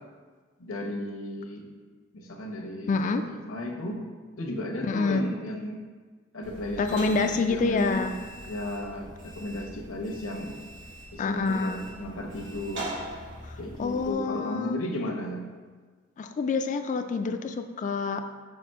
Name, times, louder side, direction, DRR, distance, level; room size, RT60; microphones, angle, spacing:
voice 1, 0.6-1.7 2.1-4.0 4.4-5.8 6.3-8.1 8.5-10.5 11.1-12.9 13.6-15.5, left 1 dB, 70° left, 1 dB, 0.9 m, -34 dB
voice 2, 2.9-3.2 4.8-5.3 6.8-8.1 11.2-11.8 13.8-14.8 16.2-18.2, left 4 dB, 35° left, 7 dB, 0.3 m, -27 dB
sound 1, 6.4-14.1, right 1 dB, 60° right, 1.3 m, -42 dB
5.8 x 3.0 x 5.4 m, 1.5 s
head